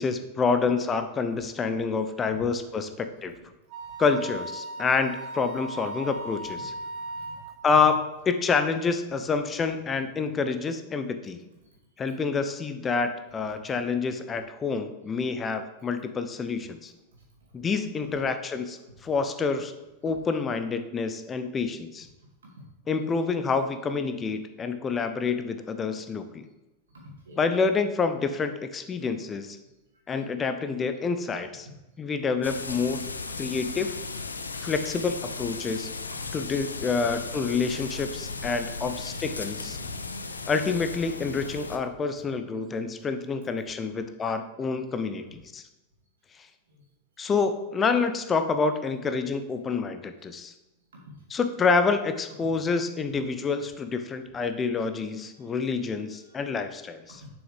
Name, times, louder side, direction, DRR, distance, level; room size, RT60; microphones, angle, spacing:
voice 1, 0.0-3.3 4.0-6.7 7.6-11.4 12.0-16.9 17.5-19.7 20.0-22.1 22.9-26.5 27.4-29.6 30.1-31.7 32.0-33.1 33.4-33.9 34.6-35.9 36.3-39.8 40.5-45.6 47.2-50.5 51.3-57.2, left 4 dB, 20° left, 9 dB, 0.6 m, -27 dB
Wind instrument woodwind instrument, 3.7-7.6, right 1 dB, 40° right, 0.8 m, -37 dB
voice 2, 7.0-7.9 11.7-11.8 17.1-17.2 18.0-18.2 22.6-22.7 26.9-27.4 29.0-29.1 33.3-33.6 36.2-36.3 38.2-38.4 38.8-39.3 39.6-40.4 46.7-46.8 51.1-51.2 55.4-55.6 56.2-56.5 57.2-57.3, right 1 dB, 70° right, -2 dB, 2.2 m, -47 dB
sound 1, 32.4-41.8, left 4 dB, 75° left, 0.4 m, -36 dB
7.1 x 6.1 x 3.3 m, 1.0 s
figure-of-eight pair, 90°, 0 cm